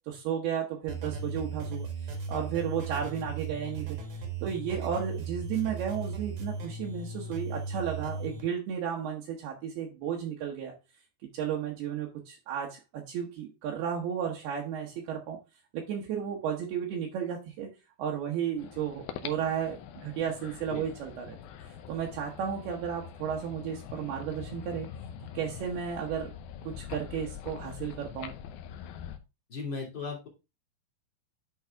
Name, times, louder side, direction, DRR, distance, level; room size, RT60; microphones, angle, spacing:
voice 1, 0.1-1.9 2.3-4.0 4.4-10.7 11.3-15.4 15.7-17.7 18.0-21.4 21.6-24.9 25.3-26.3 26.6-28.3, right 8 dB, 70° right, -2 dB, 2.9 m, -33 dB
sound 1, 0.9-8.4, right 4 dB, 50° right, 2.2 m, -37 dB
sound 2, 18.6-29.2, left 9 dB, 75° left, 2.3 m, -44 dB
voice 2, 29.5-30.3, left 4 dB, 35° left, -2 dB, 2.3 m, -36 dB
10.5 x 4.0 x 3.4 m, 0.27 s
omnidirectional pair, 5.0 m